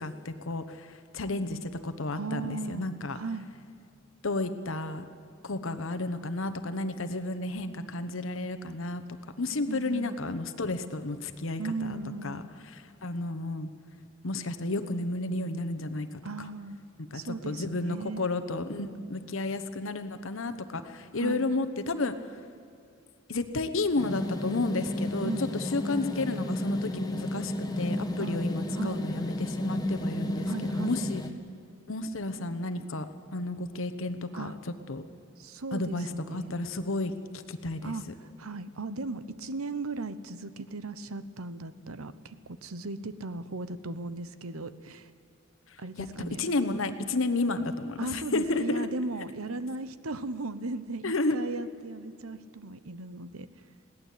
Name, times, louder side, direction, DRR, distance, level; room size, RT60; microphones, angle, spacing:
voice 1, 0.0-3.2 4.2-5.0 5.4-9.0 9.4-12.0 12.2-13.7 14.2-16.2 17.1-22.1 23.3-31.2 31.9-33.1 33.3-34.5 34.9-35.0 35.7-37.9 45.7-45.8 46.2-48.9 51.0-51.4, left 2 dB, 70° left, 9 dB, 1.1 m, -32 dB
voice 2, 2.1-2.9 3.1-3.5 9.7-10.2 11.6-12.5 16.2-16.8 17.1-18.2 21.2-21.5 25.2-25.5 28.2-28.4 28.8-29.0 30.5-31.0 34.3-34.6 35.4-36.6 37.8-45.1 45.8-46.4 48.0-53.5, right 3 dB, 85° right, 14 dB, 1.0 m, -37 dB
sound 1, 24.0-31.3, left 1 dB, 20° left, 1.2 m, -32 dB
21.5 x 16.5 x 8.4 m, 2.4 s
head